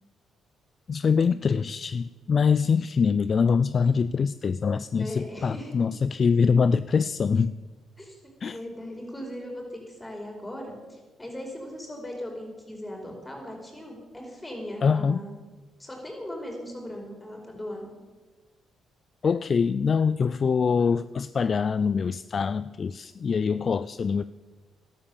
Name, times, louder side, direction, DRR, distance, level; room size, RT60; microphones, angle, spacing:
voice 1, 0.9-7.6 8.4-8.6 14.8-15.2 19.2-24.2, left 5 dB, 45° left, 15 dB, 0.4 m, -24 dB
voice 2, 5.0-5.7 8.0-8.2 8.5-15.3 15.8-17.9, equal, 15° left, 1 dB, 5.2 m, -38 dB
13.0 x 12.0 x 7.1 m, 1.3 s
cardioid pair, 90°, 0 cm